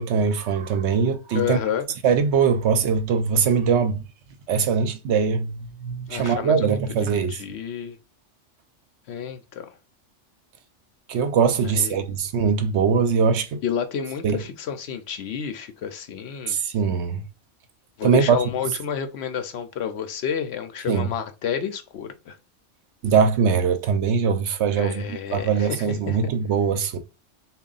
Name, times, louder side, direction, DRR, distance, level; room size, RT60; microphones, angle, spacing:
voice 1, 0.0-1.6 2.0-4.0 4.5-7.4 11.1-13.6 14.2-14.4 16.5-17.2 18.0-18.4 18.6-18.7 20.9-21.1 23.0-27.0, right 6 dB, 70° right, 0.9 m, -22 dB
voice 2, 1.3-1.9 6.1-8.0 9.1-9.7 11.6-12.1 13.6-16.6 18.0-22.4 24.8-26.2, left 8 dB, 65° left, 0.8 m, -30 dB
3.6 x 2.3 x 3.9 m
omnidirectional pair, 1.3 m